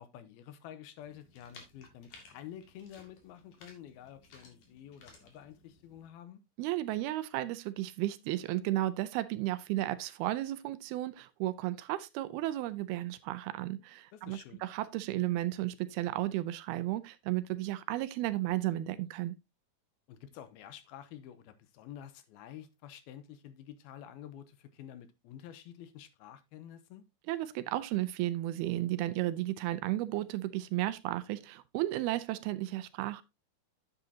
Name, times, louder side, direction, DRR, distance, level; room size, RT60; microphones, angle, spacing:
voice 1, 0.0-6.4 14.1-14.7 20.1-27.1, left 10 dB, 80° left, 2.5 m, -49 dB
sound 1, 1.0-6.1, left 4 dB, 55° left, 3.4 m, -58 dB
voice 2, 6.6-19.4 27.3-33.2, right 15 dB, 80° right, 2.4 m, -33 dB
10.0 x 7.7 x 2.8 m
omnidirectional pair, 4.6 m